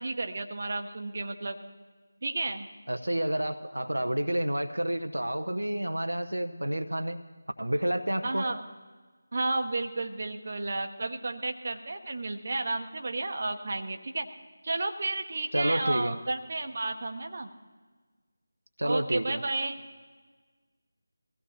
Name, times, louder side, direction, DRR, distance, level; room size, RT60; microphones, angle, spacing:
voice 1, 0.0-1.6 2.2-2.7 8.2-8.6 9.3-14.3 14.6-17.5 18.8-19.8, right 2 dB, 40° right, 6 dB, 1.0 m, -32 dB
voice 2, 2.9-7.2 7.6-8.4 15.5-16.1 18.8-19.4, right 1 dB, 75° right, 6 dB, 0.7 m, -29 dB
23.5 x 16.0 x 2.9 m, 1.4 s
figure-of-eight pair, 160°, 0 cm